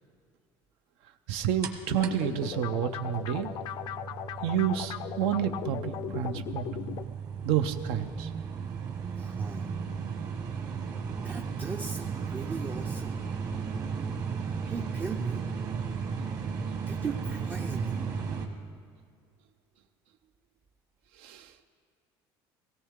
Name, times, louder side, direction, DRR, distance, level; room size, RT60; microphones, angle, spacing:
voice 1, 1.3-3.5 4.4-6.6 7.4-8.3 21.2-21.5, right 9 dB, 80° right, 8 dB, 0.7 m, -29 dB
sound 1, 1.6-18.5, right 6 dB, 40° right, 1.3 m, -35 dB
sound 2, 1.9-7.0, left 11 dB, 50° left, 0.4 m, -38 dB
voice 2, 9.2-9.8 11.2-13.2 14.6-15.5 16.9-18.1, right 4 dB, 20° right, 4 dB, 0.4 m, -38 dB
17.0 x 17.0 x 3.7 m, 2.2 s
cardioid pair, 165°, 10 cm